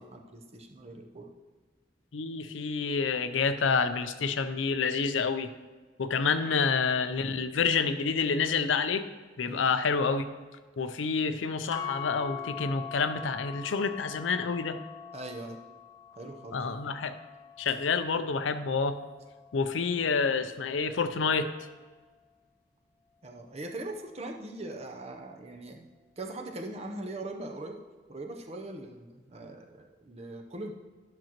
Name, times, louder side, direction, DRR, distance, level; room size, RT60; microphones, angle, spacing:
voice 1, 0.0-1.3 9.5-9.6 15.1-15.6 16.2-16.6 23.2-25.9 26.2-27.8 28.1-30.7, right 2 dB, 35° right, 3 dB, 0.7 m, -41 dB
voice 2, 2.1-5.5 6.0-9.1 9.4-10.2 10.8-14.8 16.5-17.2 17.6-18.9 19.5-21.5, left 5 dB, 90° left, 10 dB, 0.5 m, -28 dB
sound 1, 11.7-19.9, left 9 dB, 15° left, 0.4 m, -43 dB
11.5 x 6.1 x 3.0 m, 1.4 s
head